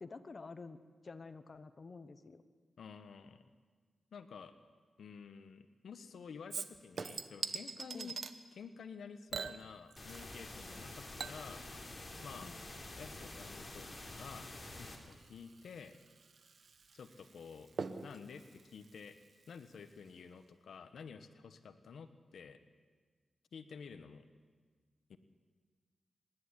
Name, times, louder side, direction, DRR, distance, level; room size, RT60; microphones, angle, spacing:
voice 1, 0.0-2.4 7.9-8.1 12.4-12.6, left 4 dB, 45° left, 10 dB, 1.1 m, -50 dB
voice 2, 2.8-3.5 4.1-4.5 5.0-8.2 8.5-11.6 12.2-12.5 12.9-13.9 14.2-14.5 14.8-16.0 16.9-17.7 18.0-19.2 19.5-22.6 23.5-24.3 25.1-25.2, left 6 dB, 80° left, 10 dB, 1.1 m, -51 dB
Chink clink / Liquid, 6.5-8.4 9.3-10.5 10.7-19.8 20.1-20.2, right 5 dB, 60° right, 1.1 m, -46 dB
sound 1, 10.0-15.0, left 2 dB, 25° left, 3.6 m, -48 dB
25.0 x 11.0 x 9.9 m, 1.5 s
cardioid pair, 80°, 0 cm